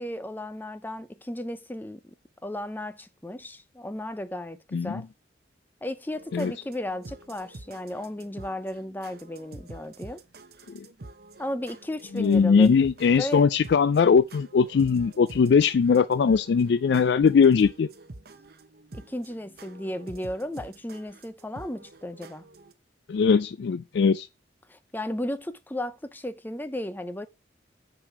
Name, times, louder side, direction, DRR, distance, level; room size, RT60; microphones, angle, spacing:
voice 1, 0.0-2.1 2.4-5.1 5.8-10.2 11.4-12.7 13.2-13.5 18.9-22.4 24.7-27.3, left 1 dB, 10° left, 0.6 m, -34 dB
sound 1, 6.1-22.7, right 2 dB, 55° right, 0.9 m, -47 dB
voice 2, 12.1-17.9 23.1-24.3, left 5 dB, 65° left, 0.3 m, -20 dB
7.3 x 4.9 x 5.9 m
head